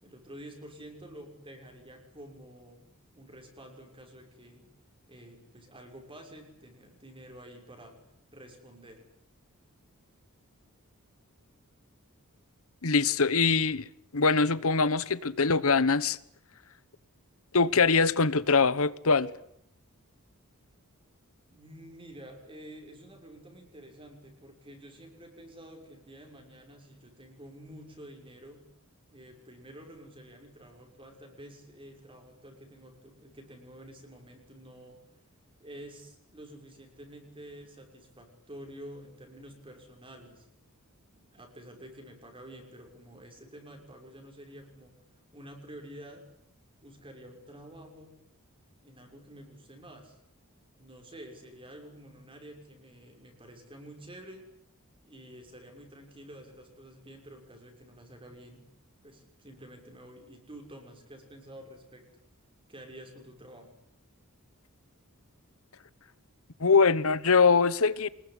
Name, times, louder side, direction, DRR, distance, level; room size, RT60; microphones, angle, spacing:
voice 1, 0.0-4.7 5.1-8.0 8.3-9.0 21.5-28.6 29.1-35.0 35.6-40.5 41.1-45.0 45.3-46.3 46.8-48.2 48.8-50.2 50.8-54.5 55.1-58.6 59.0-62.0 62.7-63.7, right 1 dB, 25° right, 6.2 m, -49 dB
voice 2, 12.8-13.9 14.1-16.2 17.5-19.3 66.6-68.1, left 4 dB, 65° left, 1.2 m, -23 dB
26.0 x 21.0 x 9.9 m
head